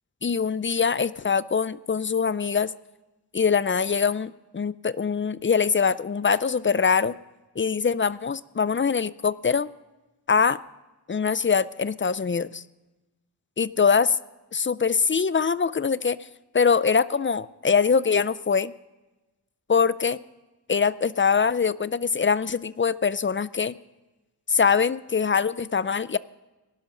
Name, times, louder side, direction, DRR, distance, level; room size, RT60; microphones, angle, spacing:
voice 1, 0.2-2.7 3.3-7.2 7.6-9.7 10.3-10.6 11.1-12.6 13.6-14.2 14.5-16.2 16.5-18.7 19.7-20.2 20.7-23.7 24.5-26.2, left 6 dB, 30° left, 17 dB, 0.4 m, -23 dB
18.5 x 12.0 x 3.8 m, 1.1 s
wide cardioid pair, 80°, 40 cm